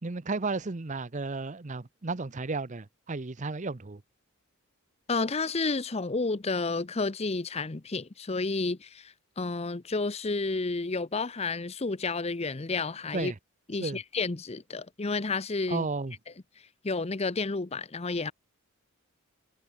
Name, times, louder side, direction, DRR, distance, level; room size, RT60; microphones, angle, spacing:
voice 1, 0.0-4.0 13.1-13.3 13.8-14.0 15.7-16.2, right 3 dB, 35° right, 0.7 m, -33 dB
voice 2, 5.1-13.3 13.7-15.9 16.8-18.3, left 3 dB, 30° left, 0.7 m, -31 dB
head